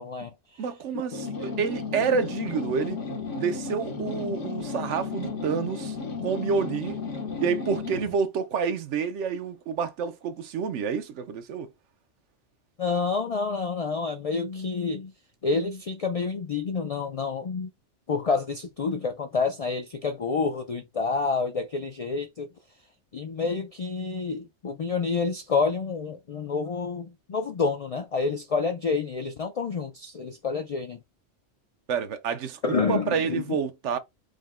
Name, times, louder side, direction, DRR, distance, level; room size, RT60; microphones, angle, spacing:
voice 1, 0.0-0.6 12.8-15.1 15.4-17.7 18.1-22.5 23.1-31.0 32.6-33.6, left 4 dB, 65° left, 0.3 m, -28 dB
voice 2, 0.6-6.0 6.2-7.0 7.4-11.7 31.9-34.0, right 6 dB, 85° right, 1.0 m, -28 dB
sound 1, 1.1-8.2, left 4 dB, 90° left, 1.5 m, -34 dB
5.0 x 2.1 x 3.6 m
omnidirectional pair, 1.2 m